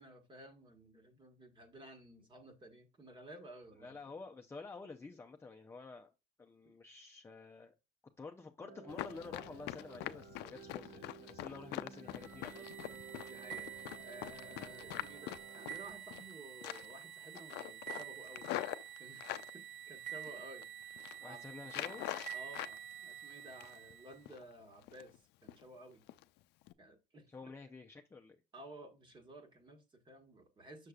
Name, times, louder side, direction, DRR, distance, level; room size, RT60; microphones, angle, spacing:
voice 1, 0.0-4.1 11.7-11.8 13.3-18.7 19.0-21.5 22.3-26.0 26.8-27.3 28.5-30.9, right 1 dB, 30° right, 1.4 m, -55 dB
voice 2, 3.8-6.1 6.4-7.8 8.2-12.7 21.2-22.0 27.3-28.4, left 4 dB, 15° left, 0.6 m, -50 dB
sound 1, 8.6-15.9, right 6 dB, 75° right, 1.6 m, -54 dB
Run, 8.9-16.3 16.6-17.0 17.3-19.5 20.1-20.6 20.9-21.2 21.7-22.8 23.1-23.9 24.3-24.4 24.8-25.2 25.5-25.6 26.1-26.2 26.6-26.7, left 15 dB, 85° left, 0.4 m, -44 dB
sound 2, 12.1-24.2, right 10 dB, 50° right, 1.0 m, -49 dB
6.6 x 6.3 x 2.4 m
cardioid pair, 110°, 17 cm